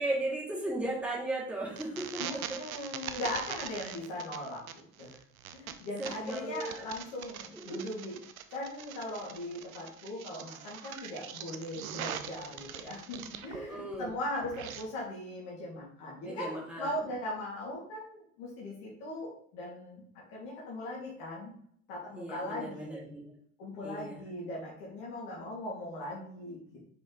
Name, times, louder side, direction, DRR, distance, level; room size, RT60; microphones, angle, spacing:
voice 1, 0.0-2.6 3.8-3.9 6.0-6.8 7.7-7.8 13.5-14.1 16.2-16.9 22.2-23.3 23.8-24.2, right 1 dB, 5° right, -5 dB, 3.0 m, -36 dB
sound 1, 1.8-13.7 13.9-14.8, right 9 dB, 85° right, 0.7 m, -43 dB
voice 2, 2.2-5.2 5.5-8.2 8.5-20.0 20.3-21.5 21.9-23.1 23.6-26.6, left 1 dB, 65° left, -5 dB, 2.5 m, -39 dB
6.5 x 5.4 x 3.9 m, 0.62 s
hypercardioid pair, 65°, 41 cm